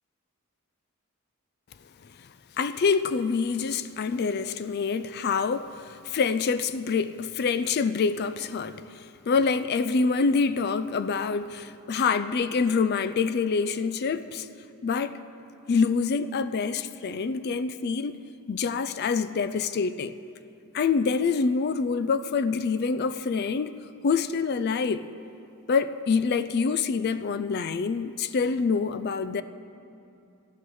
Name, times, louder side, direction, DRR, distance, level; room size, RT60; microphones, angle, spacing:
voice 1, 2.6-14.5 14.8-15.2 15.7-18.2 18.5-20.1 20.7-25.1 25.7-29.4, left 5 dB, 45° left, 0.4 m, -26 dB
13.0 x 11.5 x 6.3 m
head